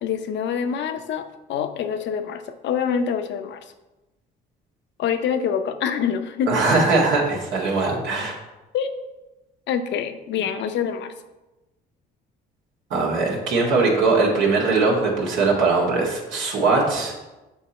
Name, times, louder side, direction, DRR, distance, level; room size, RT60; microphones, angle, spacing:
voice 1, 0.0-3.6 5.0-6.6 8.7-9.0 9.7-11.1, left 7 dB, 65° left, 9 dB, 0.7 m, -26 dB
voice 2, 6.5-8.4 12.9-17.2, right 3 dB, 75° right, -3 dB, 2.1 m, -21 dB
7.1 x 4.5 x 4.2 m, 1.0 s
supercardioid pair, 70°, 20 cm